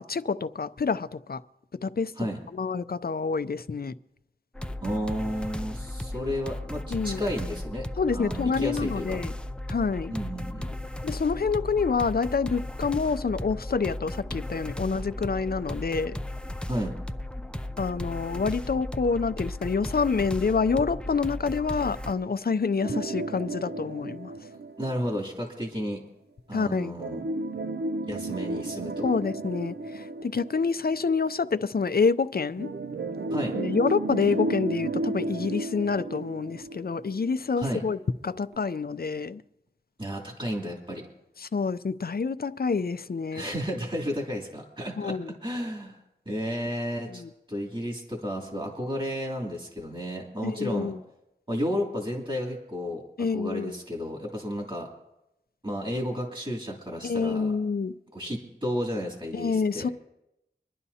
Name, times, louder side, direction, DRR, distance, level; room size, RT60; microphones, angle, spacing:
voice 1, 0.0-1.4 1.8-2.1 2.5-3.9 6.9-7.2 8.0-9.3 9.7-10.1 11.0-16.2 17.8-24.3 26.5-26.9 29.0-32.7 33.5-38.0 38.2-39.4 41.4-43.4 45.0-45.3 47.1-47.3 50.4-51.0 53.2-53.7 57.0-57.9 59.3-59.9, left 5 dB, 60° left, 0.5 m, -27 dB
sound 1, 4.5-22.1, left 1 dB, 5° left, 0.5 m, -35 dB
voice 2, 4.8-7.9 8.1-9.2 10.1-10.7 16.7-17.0 24.8-26.0 26.5-27.2 28.1-29.1 33.3-33.6 37.6-37.8 40.0-41.0 43.3-46.0 46.2-47.2 47.5-50.9 51.5-53.0 53.3-54.9 55.6-57.5 58.1-59.9, equal, 30° right, 2.9 m, -32 dB
sound 2, 22.8-25.5 27.0-31.3 32.6-37.5 37.8-37.9 38.5-38.6, right 2 dB, 80° right, 0.4 m, -33 dB
25.5 x 11.0 x 2.8 m
wide cardioid pair, 45°, 17 cm